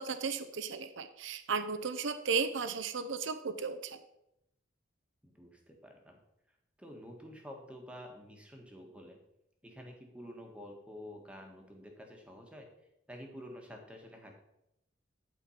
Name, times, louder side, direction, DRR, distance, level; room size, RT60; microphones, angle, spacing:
voice 1, 0.0-4.0, right 5 dB, 70° right, 10 dB, 0.6 m, -35 dB
voice 2, 5.2-6.2 6.8-9.2 9.6-12.7 13.1-14.3, equal, 5° right, 2 dB, 1.4 m, -49 dB
11.5 x 4.5 x 5.7 m, 0.83 s
head